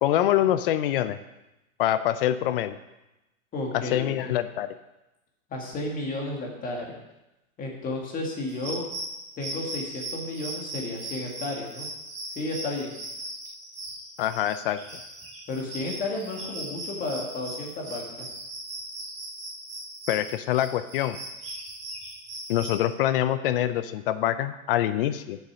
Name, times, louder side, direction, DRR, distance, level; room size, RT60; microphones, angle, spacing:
voice 1, 0.0-1.2 1.8-2.8 3.7-4.7 14.2-14.8 20.1-21.2 22.5-25.4, left 12 dB, 45° left, 12 dB, 0.5 m, -25 dB
voice 2, 3.5-4.3 5.5-6.9 7.6-8.9 9.4-11.9 12.4-12.9 15.5-18.3, left 2 dB, 20° left, 0 dB, 2.0 m, -32 dB
sound 1, 8.5-22.8, right 1 dB, 15° right, 2.6 m, -38 dB
8.2 x 6.9 x 6.2 m, 0.96 s
hypercardioid pair, 145°, 42 cm